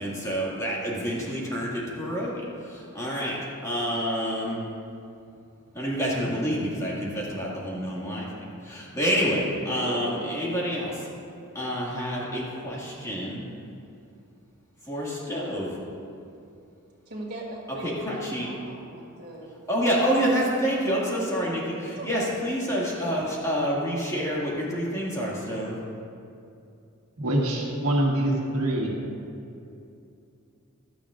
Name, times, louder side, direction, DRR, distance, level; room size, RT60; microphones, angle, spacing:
voice 1, 0.0-4.6 5.7-8.3 8.6-11.1 11.5-13.4 14.8-15.8 17.8-18.5 19.7-25.8, equal, 15° left, -5 dB, 2.0 m, -28 dB
voice 2, 9.8-10.5 17.1-19.5 21.8-22.2, right 1 dB, 50° right, -3 dB, 2.3 m, -38 dB
voice 3, 27.2-29.0, right 1 dB, 85° right, -1 dB, 1.6 m, -25 dB
16.0 x 12.0 x 2.5 m, 2.6 s
head